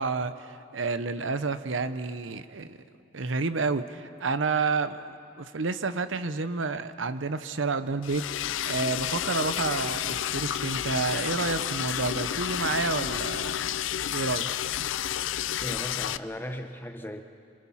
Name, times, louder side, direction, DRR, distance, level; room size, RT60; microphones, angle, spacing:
voice 1, 0.0-2.8 3.1-14.5, right 4 dB, 85° right, 11 dB, 0.9 m, -30 dB
Liquid, 8.0-16.2, left 10 dB, 85° left, 0.5 m, -30 dB
voice 2, 15.6-17.2, equal, 10° left, 6 dB, 1.0 m, -37 dB
26.5 x 26.0 x 5.8 m, 2.5 s
head